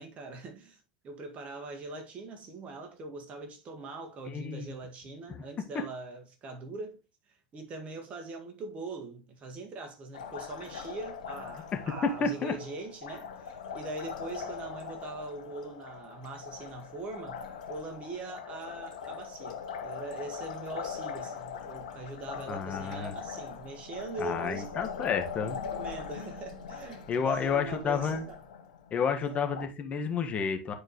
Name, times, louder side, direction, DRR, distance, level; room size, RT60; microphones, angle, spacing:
voice 1, 0.0-7.0 7.3-24.7 25.7-28.4 29.2-29.4, right 2 dB, 35° right, 1.9 m, -42 dB
voice 2, 4.3-4.7 5.3-5.4 5.7-5.8 11.7-12.5 22.5-23.1 24.2-25.6 27.1-28.2 28.9-30.7, left 6 dB, 30° left, 1.5 m, -31 dB
Liquid, 10.1-29.7, left 6 dB, 80° left, 1.3 m, -41 dB
10.0 x 4.6 x 3.1 m
hypercardioid pair, 90°, 4 cm